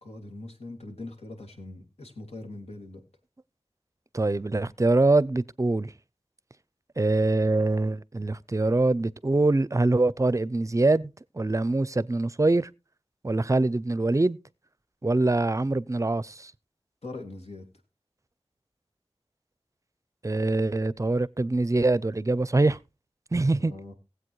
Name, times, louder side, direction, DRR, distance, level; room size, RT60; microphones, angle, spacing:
voice 1, 0.0-3.0 17.0-17.7 23.6-23.9, left 2 dB, 80° left, 2.3 m, -41 dB
voice 2, 4.1-5.9 7.0-11.1 11.3-12.7 13.2-14.4 15.0-16.5 20.2-22.8 23.3-23.7, right 2 dB, 30° right, 0.5 m, -24 dB
18.5 x 8.1 x 3.1 m
wide cardioid pair, 55°, 11 cm